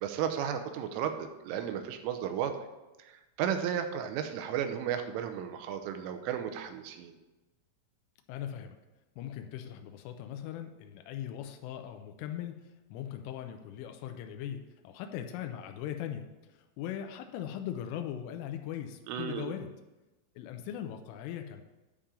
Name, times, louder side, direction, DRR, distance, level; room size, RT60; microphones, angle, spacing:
voice 1, 0.0-2.6 3.0-7.1 19.1-19.5, right 9 dB, 85° right, 7 dB, 3.3 m, -34 dB
voice 2, 8.3-8.8 9.2-19.7 20.4-21.6, left 10 dB, 90° left, 6 dB, 3.2 m, -40 dB
10.0 x 3.7 x 6.9 m, 1.1 s
omnidirectional pair, 5.6 m